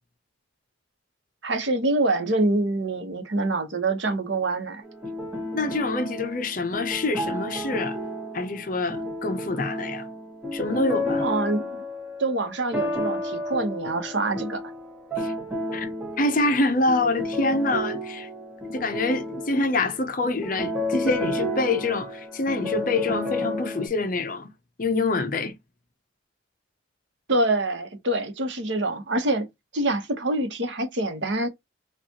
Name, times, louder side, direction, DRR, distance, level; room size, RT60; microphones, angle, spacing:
voice 1, 1.4-4.8 11.2-11.8 12.2-14.6 27.3-29.5 29.7-31.5, right 2 dB, 65° right, 1.0 m, -25 dB
sound 1, 4.8-23.9, left 1 dB, 10° right, 1.0 m, -31 dB
voice 2, 5.5-8.0 8.3-10.1 10.5-11.2 15.2-15.3 15.7-15.9 16.2-18.3 18.6-24.5 24.8-25.5, left 2 dB, 45° left, 0.6 m, -26 dB
4.4 x 2.4 x 2.8 m
head